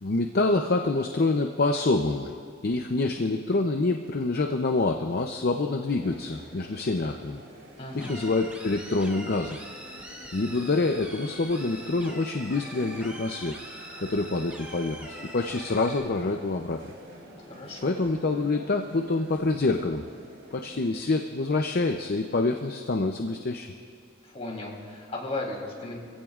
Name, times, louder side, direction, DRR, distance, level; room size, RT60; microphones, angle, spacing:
voice 1, 0.0-2.3 2.6-7.4 7.9-9.6 10.3-13.5 14.0-16.8 17.8-20.0 20.5-23.7, left 3 dB, 50° left, 4 dB, 0.6 m, -26 dB
sound 1, 6.0-20.9, right 1 dB, 65° right, 4.4 m, -49 dB
voice 2, 7.8-8.1 17.4-18.0 24.2-26.0, left 2 dB, 30° left, -3 dB, 3.2 m, -36 dB
sound 2, 8.0-16.0, right 1 dB, 5° right, 1.5 m, -43 dB
25.5 x 16.0 x 2.5 m, 2.3 s
head